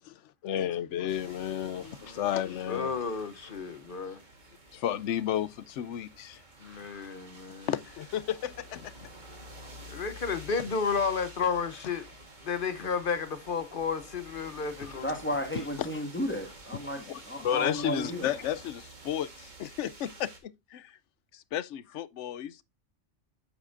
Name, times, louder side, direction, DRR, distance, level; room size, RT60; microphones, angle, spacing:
voice 1, 0.4-3.1 4.7-6.4 7.7-8.9 14.8-15.0 15.8-15.9 17.1-20.9 21.3-22.6, left 10 dB, 75° left, 0.9 m, -33 dB
sound 1, 1.1-20.4, right 1 dB, 40° right, 1.7 m, -50 dB
voice 2, 2.7-4.2 6.6-7.7 9.9-12.1 12.4-15.1, left 5 dB, 50° left, 0.9 m, -32 dB
voice 3, 15.0-18.3, equal, 10° left, 1.6 m, -33 dB
8.7 x 7.3 x 2.5 m
omnidirectional pair, 1.3 m